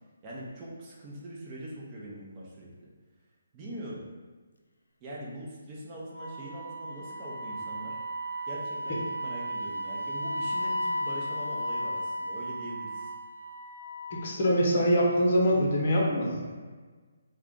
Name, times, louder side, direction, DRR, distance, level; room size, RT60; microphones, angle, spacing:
voice 1, 0.2-2.7 3.5-4.0 5.0-8.0 8.5-13.1, equal, 25° right, -5 dB, 0.8 m, -42 dB
Wind instrument woodwind instrument, 6.1-14.4, equal, 85° left, 0.4 m, -35 dB
voice 2, 14.2-16.4, equal, 45° left, -3 dB, 0.8 m, -24 dB
2.4 x 2.3 x 3.8 m, 1.4 s
figure-of-eight pair, 145°, 0 cm